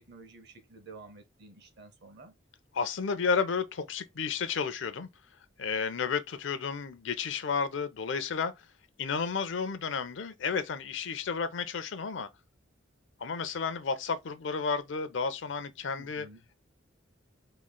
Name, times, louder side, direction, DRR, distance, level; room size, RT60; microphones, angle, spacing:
voice 1, 0.0-2.3 16.0-16.4, right 3 dB, 60° right, 1.0 m, -51 dB
voice 2, 2.7-5.1 5.6-8.5 9.0-12.3 13.2-16.3, left 5 dB, 70° left, 0.5 m, -32 dB
3.1 x 2.3 x 3.7 m
head